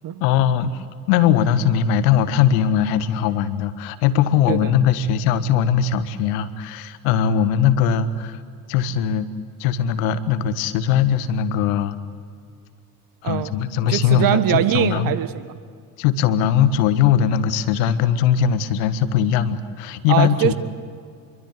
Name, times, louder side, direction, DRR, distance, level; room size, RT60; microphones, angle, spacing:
voice 1, 0.2-8.4 8.7-9.3 9.6-12.0 13.2-15.1 16.0-20.5, left 8 dB, 60° left, 12 dB, 1.6 m, -20 dB
voice 2, 13.9-15.6 20.1-20.5, right 11 dB, 45° right, 13 dB, 1.6 m, -21 dB
26.0 x 23.5 x 8.4 m, 2.2 s
figure-of-eight pair, 60°, 48 cm